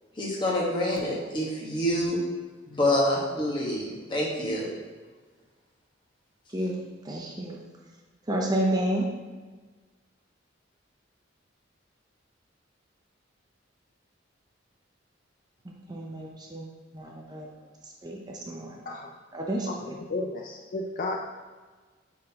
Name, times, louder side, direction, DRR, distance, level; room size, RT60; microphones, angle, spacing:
voice 1, 0.2-2.2 2.7-4.7, left 1 dB, 25° left, -4 dB, 1.4 m, -27 dB
voice 2, 7.0-7.6 8.3-9.1 15.6-17.5 18.0-18.8 19.3-19.9, right 1 dB, 20° right, -1 dB, 0.6 m, -31 dB
voice 3, 19.7-21.2, left 2 dB, 45° left, 1 dB, 0.4 m, -33 dB
8.5 x 3.9 x 2.9 m, 1.4 s
head